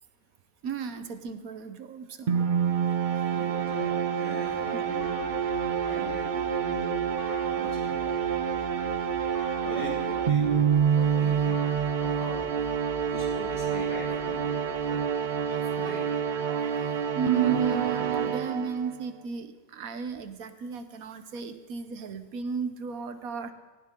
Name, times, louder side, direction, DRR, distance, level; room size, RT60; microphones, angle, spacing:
voice 1, 0.6-2.4 4.7-4.8 15.5-23.5, right 5 dB, 75° right, 10 dB, 1.4 m, -35 dB
sound 1, 2.3-19.0, right 8 dB, 50° right, 0.6 m, -27 dB
voice 2, 3.3-9.1 9.6-10.6 10.9-11.6 11.9-12.5 13.0-14.6 14.8-15.0 15.7-16.0, left 1 dB, 75° left, -5 dB, 6.2 m, -41 dB
sound 2, 5.0-13.7, left 2 dB, 55° left, 1.6 m, -46 dB
17.5 x 16.0 x 3.7 m, 1.3 s
omnidirectional pair, 1.5 m